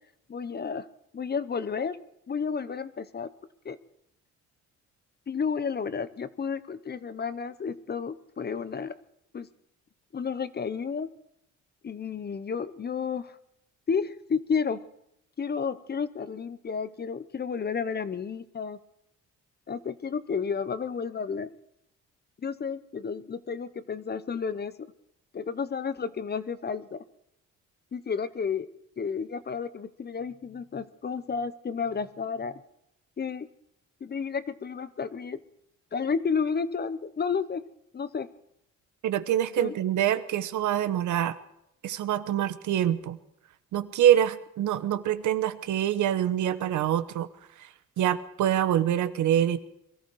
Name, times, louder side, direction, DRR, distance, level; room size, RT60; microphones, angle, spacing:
voice 1, 0.3-0.9 1.1-2.0 2.3-3.3 3.6-3.8 5.3-9.0 9.3-9.5 10.1-11.1 11.8-13.4 13.9-14.9 15.4-18.8 19.7-21.5 22.4-24.9 25.3-27.0 27.9-28.7 29.0-32.6 33.2-33.5 34.0-35.4 35.9-37.7 37.9-38.3 39.6-39.7, left 6 dB, 35° left, 15 dB, 0.8 m, -31 dB
voice 2, 39.0-41.4 41.8-43.2 43.7-47.3 47.6-49.6, right 11 dB, 75° right, 12 dB, 1.0 m, -25 dB
22.0 x 13.5 x 4.7 m, 0.82 s
cardioid pair, 90°, 30 cm